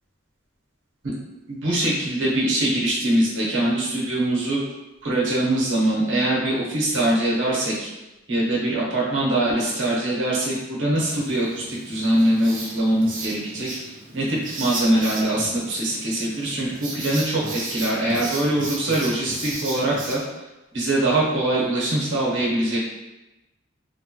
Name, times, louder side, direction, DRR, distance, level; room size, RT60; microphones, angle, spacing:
voice 1, 1.5-4.6 5.0-7.9 8.3-20.2 20.7-22.8, right 1 dB, 70° right, -5 dB, 1.0 m, -23 dB
Writing, 10.9-20.1, right 2 dB, 40° right, 0.6 m, -35 dB
3.3 x 2.2 x 2.9 m, 1.0 s
head